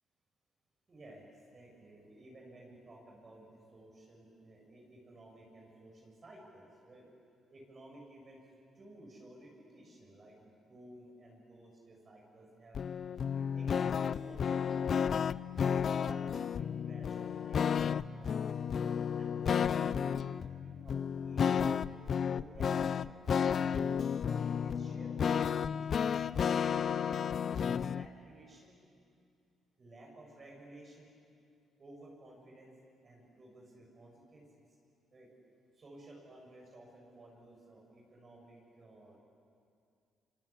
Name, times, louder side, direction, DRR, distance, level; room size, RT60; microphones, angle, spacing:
voice 1, 0.9-7.0 7.5-8.4 8.7-13.0 13.5-14.9 15.5-18.5 19.1-23.4 23.9-26.6 27.0-28.8 29.8-31.1 31.8-32.7 33.0-34.4 34.7-34.8 35.1-35.3 35.7-39.2, right 1 dB, 35° right, -2 dB, 7.5 m, -55 dB
sound 1, 12.7-28.1, left 7 dB, 55° left, 0.6 m, -32 dB
26.5 x 24.5 x 8.8 m, 2.4 s
cardioid pair, 90°, 0 cm